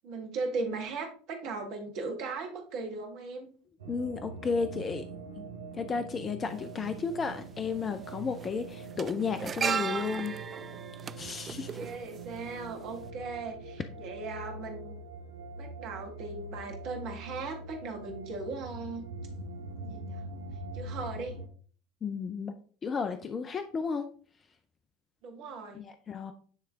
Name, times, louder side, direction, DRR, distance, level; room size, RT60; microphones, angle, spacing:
voice 1, 0.0-3.5 11.7-15.0 15.6-19.0 19.8-20.2 20.7-21.4 25.2-25.8, right 3 dB, 55° right, 3 dB, 1.6 m, -38 dB
sound 1, 3.8-21.5, right 2 dB, 85° right, 1.0 m, -43 dB
voice 2, 3.9-5.1 5.4-5.5 5.7-10.3 11.2-11.8 22.0-22.5 22.8-24.1 25.7-26.3, left 5 dB, 30° left, 9 dB, 0.5 m, -33 dB
sound 2, 6.5-6.6 7.8-8.1 8.3-12.6 12.9-13.1, right 6 dB, 30° right, 0.3 m, -35 dB
9.6 x 3.2 x 3.5 m, 0.43 s
figure-of-eight pair, 70°, 0 cm